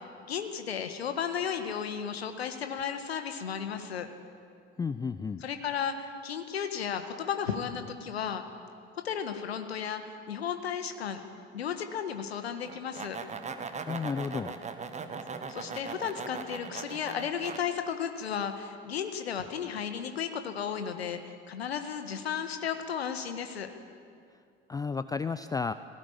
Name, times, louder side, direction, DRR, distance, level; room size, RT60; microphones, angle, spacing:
voice 1, 0.0-4.1 5.4-8.4 8.9-11.2 11.5-13.2 15.5-23.7, left 7 dB, 75° left, 8 dB, 1.7 m, -34 dB
voice 2, 4.8-5.4 13.9-14.5 24.7-25.7, left 5 dB, 10° left, 12 dB, 0.4 m, -32 dB
sound 1, 12.7-17.6, right 5 dB, 20° right, 1.5 m, -39 dB
19.5 x 17.5 x 8.8 m, 2.3 s
figure-of-eight pair, 65°, 31 cm